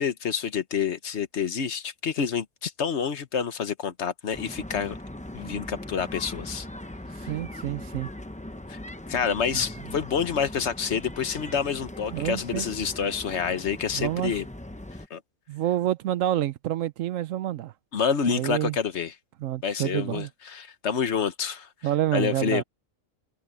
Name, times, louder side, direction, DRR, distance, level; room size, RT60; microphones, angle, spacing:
voice 1, 0.0-5.0 5.3-6.7 7.2-7.3 8.7-8.8 9.1-14.4 15.1-15.2 17.9-19.1 19.6-21.7 22.1-22.6, left 7 dB, 60° left, 1.3 m, -28 dB
sound 1, 4.3-15.1, left 1 dB, 10° left, 0.6 m, -40 dB
voice 2, 7.3-8.1 9.5-9.6 12.1-12.7 13.9-14.3 15.5-17.7 18.3-18.8 19.4-20.3 21.8-22.6, right 12 dB, 75° right, 1.0 m, -28 dB
omnidirectional pair, 1.4 m